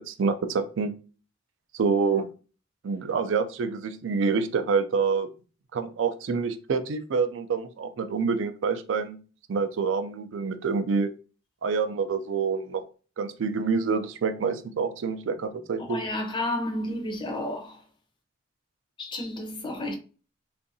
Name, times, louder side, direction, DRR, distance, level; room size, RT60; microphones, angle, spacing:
voice 1, 0.1-0.9 1.7-2.3 2.8-5.3 5.7-9.2 9.5-11.1 11.6-12.8 13.2-16.0, right 5 dB, 65° right, 0.4 m, -27 dB
voice 2, 15.9-17.8 19.0-20.0, left 1 dB, 25° left, 0.5 m, -31 dB
2.6 x 2.5 x 2.6 m
head